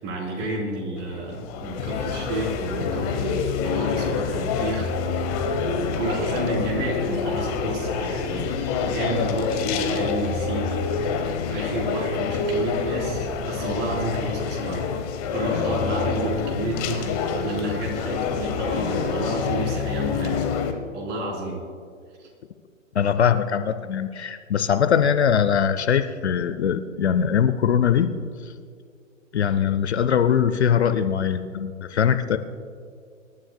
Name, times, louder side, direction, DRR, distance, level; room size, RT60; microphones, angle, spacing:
voice 1, 0.0-4.9 5.6-14.9 15.3-20.5 20.9-21.6 22.2-22.3, right 1 dB, 25° right, -1 dB, 3.5 m, -30 dB
sound 1, 1.0-20.7, left 5 dB, 30° left, 1.2 m, -27 dB
voice 2, 22.9-28.1 28.4-28.5 29.3-32.4, left 8 dB, 55° left, 11 dB, 0.7 m, -21 dB
25.5 x 12.5 x 2.3 m, 2.2 s
figure-of-eight pair, 120°, 39 cm